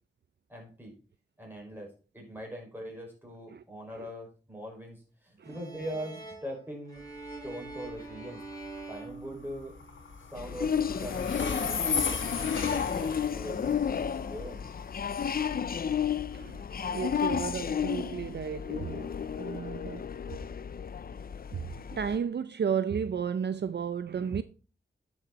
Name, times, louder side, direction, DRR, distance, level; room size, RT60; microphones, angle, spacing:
voice 1, 0.5-1.0 1.4-7.0 7.4-8.4 8.9-9.7 10.3-12.3 12.7-14.6, equal, 10° right, 5.3 m, -42 dB
sound 1, 5.4-10.1, right 3 dB, 20° left, 5.4 m, -45 dB
Train, 7.0-21.7, left 5 dB, 90° left, 1.4 m, -38 dB
sound 2, 10.4-22.2, left 7 dB, 50° left, 0.5 m, -32 dB
voice 2, 16.3-20.1 21.5-24.4, right 7 dB, 60° right, 0.5 m, -33 dB
10.0 x 6.4 x 4.1 m
cardioid pair, 55°, 19 cm